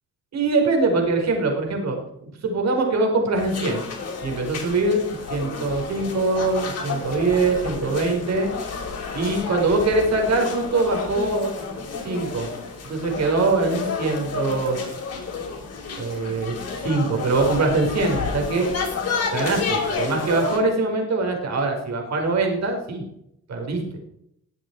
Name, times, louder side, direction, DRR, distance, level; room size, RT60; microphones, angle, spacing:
voice 1, 0.3-3.8 4.2-8.5 9.1-11.5 12.0-12.5 12.8-14.8 16.0-18.7 19.3-23.0 23.5-23.8, right 3 dB, 60° right, 2 dB, 4.8 m, -23 dB
sound 1, 3.4-20.6, left 5 dB, 55° left, 4.7 m, -31 dB
21.0 x 7.6 x 4.8 m, 0.76 s
cardioid pair, 90°, 30 cm